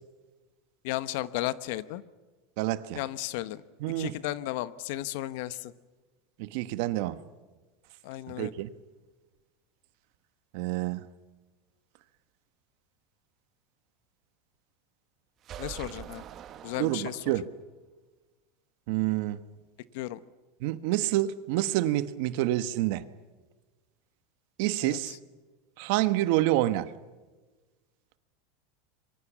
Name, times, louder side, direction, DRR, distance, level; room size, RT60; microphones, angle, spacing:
voice 1, 0.8-2.0 2.9-3.6 4.0-5.7 8.0-8.5 15.6-16.2 16.6-17.2 19.9-20.2 24.8-25.2, left 15 dB, 65° left, 15 dB, 1.0 m, -34 dB
voice 2, 2.6-3.0 3.8-4.1 6.4-7.2 8.4-8.7 10.5-11.0 16.8-17.5 18.9-19.4 20.6-23.0 24.6-25.1 25.8-26.9, right 15 dB, 60° right, 13 dB, 1.2 m, -28 dB
sound 1, 15.4-17.5, right 10 dB, 35° right, 1.0 m, -44 dB
26.5 x 23.5 x 7.3 m, 1.3 s
supercardioid pair, 145°, 0 cm